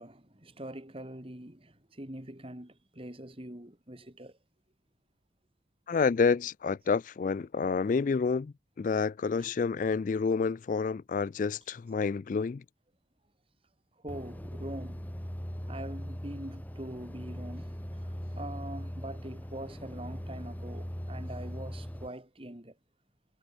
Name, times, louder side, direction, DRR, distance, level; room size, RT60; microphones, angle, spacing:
voice 1, 0.0-4.3 9.4-9.5 14.0-15.1 15.7-17.8 18.3-22.7, right 1 dB, 30° right, 2.5 m, -43 dB
voice 2, 5.9-12.6, left 5 dB, 45° left, 0.3 m, -29 dB
sound 1, 14.1-22.1, equal, 10° left, 1.3 m, -40 dB
head